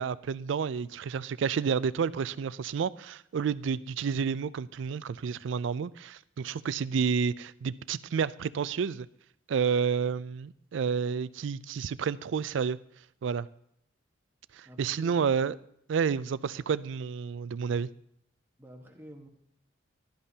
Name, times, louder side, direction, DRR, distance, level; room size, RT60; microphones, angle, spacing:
voice 1, 0.0-9.1 9.5-12.8 13.2-13.5 14.5-15.6 15.9-17.9, right 6 dB, 70° right, 0.3 m, -30 dB
voice 2, 14.6-15.4 18.6-19.3, equal, 10° right, 1.3 m, -49 dB
16.0 x 11.5 x 2.8 m
head